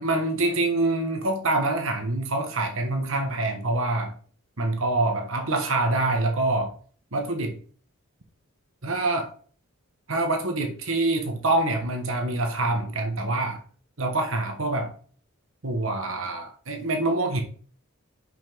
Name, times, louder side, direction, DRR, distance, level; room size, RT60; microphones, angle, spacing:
voice 1, 0.0-4.1 4.6-6.7 7.1-7.5 8.8-9.3 10.1-13.6 14.0-14.9 15.6-17.4, right 2 dB, 65° right, 4 dB, 1.5 m, -25 dB
5.8 x 5.7 x 4.6 m, 0.43 s
head